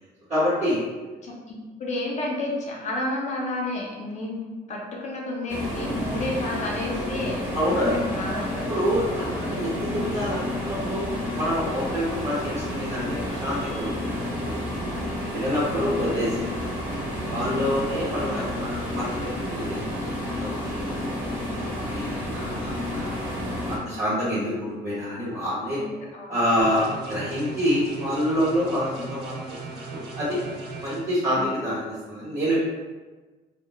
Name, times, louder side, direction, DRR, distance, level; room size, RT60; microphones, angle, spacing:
voice 1, 0.3-0.9 7.5-8.0 8.7-14.7 15.3-16.7 17.3-21.2 21.5-23.2 23.7-25.8 26.3-30.4 30.8-32.6, equal, 45° right, -10 dB, 0.9 m, -27 dB
voice 2, 1.2-4.4 4.7-8.8 16.1-16.4 18.2-18.5 23.8-24.2 25.8-25.9 26.1-26.4 31.4-31.6, left 1 dB, 45° left, -2 dB, 0.5 m, -31 dB
sound 1, 5.5-23.8, left 1 dB, 10° right, 0.8 m, -30 dB
sound 2, 26.6-31.0, right 4 dB, 75° right, 0.5 m, -38 dB
2.1 x 2.0 x 2.8 m, 1.3 s
cardioid pair, 110°, 17 cm